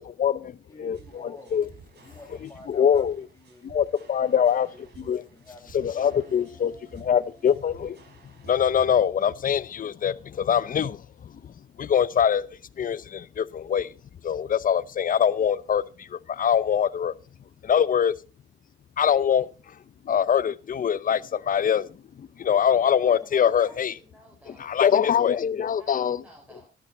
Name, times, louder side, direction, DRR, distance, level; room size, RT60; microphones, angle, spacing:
voice 1, 0.0-1.6 2.7-3.2 3.6-4.7 5.1-5.2 5.7-8.0 8.4-12.5 12.8-13.9 14.2-17.1 17.6-18.1 19.0-19.8 20.0-23.9 24.6-26.2, left 8 dB, 45° left, 0.7 m, -24 dB
voice 2, 0.7-1.8 2.0-3.7 4.1-6.4 15.7-15.8 22.7-22.8 23.1-24.0, left 2 dB, 15° left, 5.1 m, -49 dB
sound 1, 0.9-8.9, right 6 dB, 55° right, 3.8 m, -52 dB
sound 2, 5.8-10.6, right 3 dB, 25° right, 4.1 m, -58 dB
voice 3, 23.5-24.8 25.7-26.7, right 1 dB, 5° right, 3.7 m, -53 dB
12.0 x 11.5 x 4.2 m
cardioid pair, 90°, 20 cm